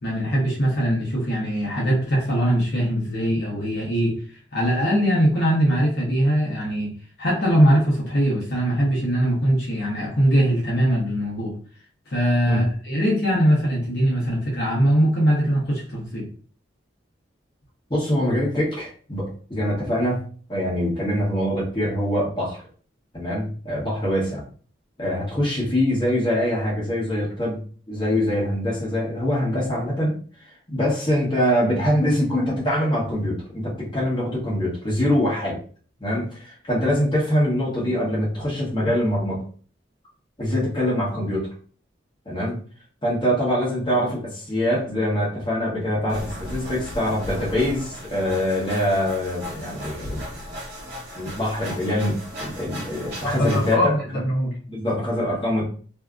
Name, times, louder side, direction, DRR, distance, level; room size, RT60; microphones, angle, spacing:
voice 1, 0.0-4.1 4.5-6.9 7.2-11.6 12.1-16.3 53.2-54.5, equal, 55° left, -5 dB, 0.8 m, -21 dB
voice 2, 17.9-20.2 20.5-22.6 23.1-24.4 25.0-27.6 27.9-30.2 30.7-35.6 36.0-39.4 40.4-41.4 42.2-42.6 43.0-50.4 51.1-54.0 54.7-55.6, equal, 25° left, -6 dB, 1.1 m, -24 dB
sound 1, 46.1-53.7, equal, 60° right, 1.0 m, -36 dB
2.7 x 2.4 x 2.3 m, 0.43 s
head